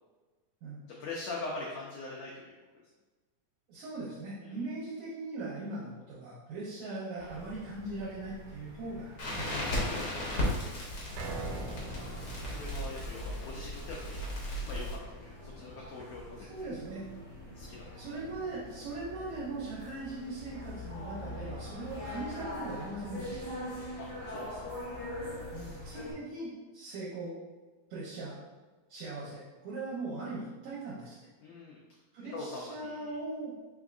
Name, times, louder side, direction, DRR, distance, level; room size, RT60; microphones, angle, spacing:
voice 1, 0.9-2.4 4.4-4.6 9.7-10.1 12.4-14.2 14.6-15.0 15.4-16.5 17.5-17.8 21.3-21.6 24.0-24.6 29.3-29.4 31.4-31.8 32.3-33.2, left 3 dB, 85° left, -3 dB, 1.4 m, -42 dB
voice 2, 3.7-9.7 16.5-17.1 18.0-23.4 25.5-27.4 27.9-28.4 28.9-31.2 32.1-33.5, right 2 dB, 70° right, -8 dB, 2.1 m, -40 dB
sound 1, 7.2-26.1, left 1 dB, 50° left, 0.8 m, -44 dB
Crackle, 9.2-15.0, left 1 dB, 70° left, 1.1 m, -35 dB
sound 2, 11.2-23.4 23.8-23.9 24.4-24.5, right 3 dB, 90° right, 2.1 m, -48 dB
5.0 x 3.5 x 2.4 m, 1.3 s
omnidirectional pair, 3.7 m